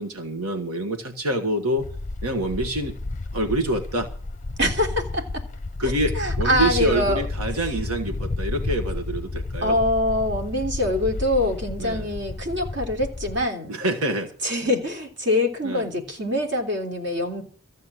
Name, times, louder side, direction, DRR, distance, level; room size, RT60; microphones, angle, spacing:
voice 1, 0.0-1.9 2.2-2.9 3.3-4.1 5.8-9.8 11.8-12.1 13.7-14.3 15.6-15.9, right 1 dB, 90° right, 1.6 m, -26 dB
sound 1, 1.8-13.5, left 2 dB, 35° left, 0.6 m, -31 dB
voice 2, 4.6-5.4 5.8-7.3 9.6-13.7 14.4-17.4, left 1 dB, 55° right, 3.3 m, -24 dB
14.0 x 7.7 x 7.7 m
head